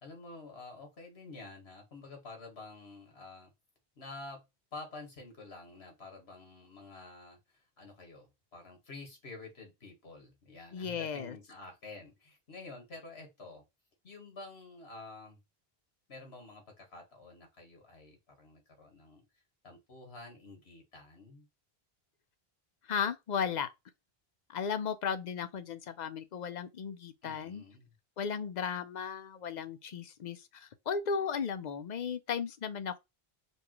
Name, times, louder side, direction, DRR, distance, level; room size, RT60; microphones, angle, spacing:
voice 1, 0.0-3.5 4.0-4.4 4.7-13.6 14.0-15.4 16.1-19.2 19.6-21.5 27.2-27.9, left 3 dB, 75° left, 1.9 m, -49 dB
voice 2, 10.7-11.4 22.9-23.7 24.5-27.6 28.2-33.0, left 6 dB, 55° left, 0.6 m, -35 dB
5.2 x 2.4 x 3.0 m
omnidirectional pair, 1.1 m